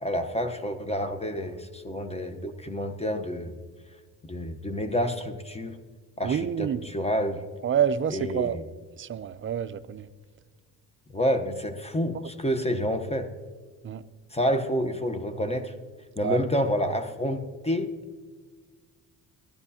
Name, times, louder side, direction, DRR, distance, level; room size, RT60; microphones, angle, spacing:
voice 1, 0.0-3.6 4.2-5.8 6.2-7.4 8.1-8.6 11.1-13.3 14.3-15.7 16.2-17.9, equal, 15° left, 8 dB, 0.9 m, -28 dB
voice 2, 6.2-6.8 7.6-8.6 9.0-10.1 13.8-14.0 16.2-16.4, right 9 dB, 30° right, 12 dB, 0.5 m, -27 dB
14.5 x 12.0 x 2.8 m, 1.5 s
cardioid pair, 85°, 41 cm